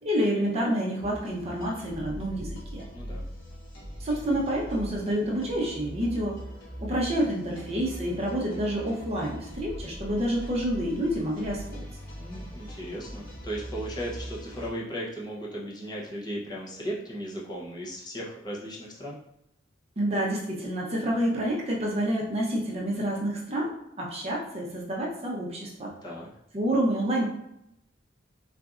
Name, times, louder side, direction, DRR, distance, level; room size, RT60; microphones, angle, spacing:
voice 1, 0.0-2.9 4.0-6.4 6.8-11.8 20.0-23.7 24.0-25.9 26.5-27.3, equal, 35° right, -3 dB, 0.7 m, -28 dB
sound 1, 1.0-14.7, equal, 55° left, 1.3 m, -41 dB
voice 2, 2.9-3.2 12.1-19.2 26.0-26.3, equal, 20° left, -5 dB, 0.7 m, -36 dB
4.0 x 2.5 x 2.4 m, 0.80 s
head